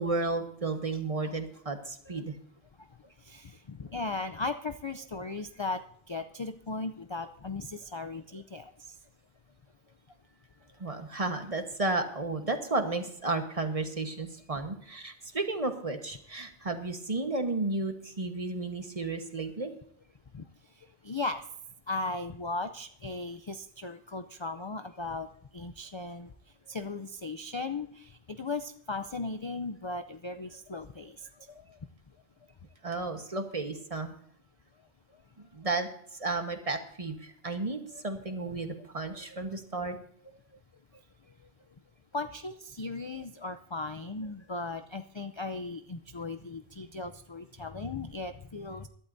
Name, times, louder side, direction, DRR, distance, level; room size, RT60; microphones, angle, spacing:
voice 1, 0.0-2.3 10.8-19.7 32.8-34.1 35.4-35.9 36.2-40.0, right 3 dB, 35° right, 6 dB, 1.3 m, -33 dB
voice 2, 3.3-5.8 6.1-8.6 20.3-20.4 21.0-21.4 21.9-25.3 25.5-26.3 26.7-31.2 37.9-38.0 42.1-48.9, left 3 dB, 35° left, 8 dB, 0.5 m, -37 dB
22.0 x 12.0 x 2.7 m, 0.64 s
omnidirectional pair, 1.1 m